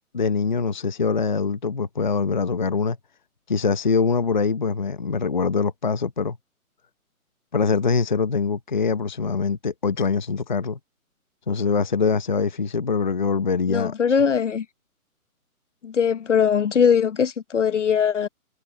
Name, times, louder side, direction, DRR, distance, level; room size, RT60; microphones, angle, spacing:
voice 1, 0.1-3.0 3.5-6.4 7.5-10.8 11.5-14.0, left 5 dB, 30° left, 0.8 m, -23 dB
voice 2, 13.7-14.6 15.8-18.3, left 7 dB, 55° left, 1.1 m, -21 dB
hypercardioid pair, 175°, 44 cm